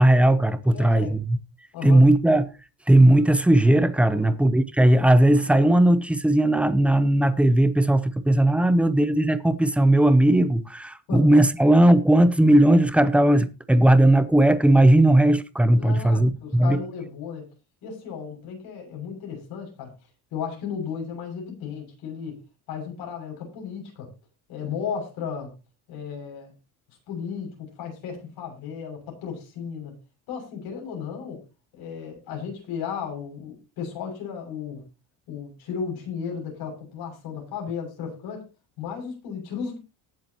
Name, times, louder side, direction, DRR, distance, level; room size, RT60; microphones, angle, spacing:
voice 1, 0.0-1.4 1.8-2.5 2.9-16.8, right 1 dB, 5° right, 0.6 m, -18 dB
voice 2, 0.6-1.2 1.7-2.0 4.1-4.3 4.9-5.0 8.6-8.7 11.1-11.2 15.7-17.5 17.8-19.9 20.3-22.4 22.7-24.1 24.5-25.5 25.9-26.5 27.1-30.0 30.3-31.4 31.7-34.8 35.3-38.5 38.8-39.8, left 7 dB, 70° left, 7.0 m, -34 dB
19.5 x 7.6 x 3.0 m
cardioid pair, 160°, 39 cm